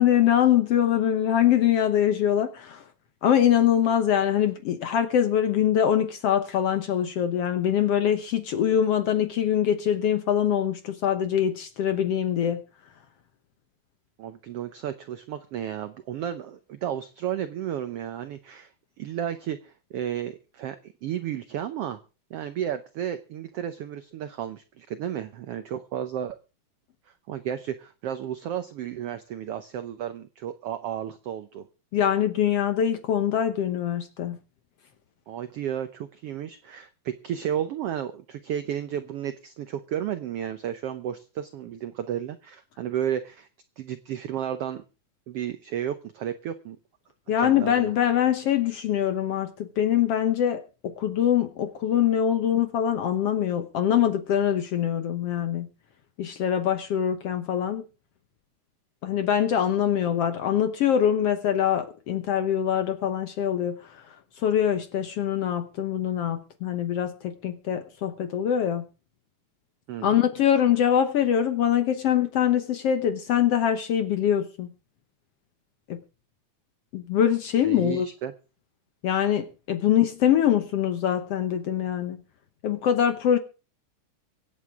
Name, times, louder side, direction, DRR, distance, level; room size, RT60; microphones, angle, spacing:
voice 1, 0.0-2.8 3.2-12.6 31.9-34.4 47.3-55.7 56.2-57.8 59.0-64.0 64.4-68.9 70.0-74.7 75.9-76.0 76.9-78.1 79.0-82.2 82.6-83.4, left 10 dB, 65° left, 8 dB, 1.6 m, -23 dB
voice 2, 14.2-18.7 19.0-22.0 22.3-26.4 27.3-31.7 35.3-43.5 43.8-44.8 45.3-46.8 47.4-47.9 69.9-70.2 77.6-78.3, right 10 dB, 80° right, 11 dB, 1.3 m, -33 dB
24.5 x 9.4 x 3.6 m, 0.34 s
omnidirectional pair, 3.7 m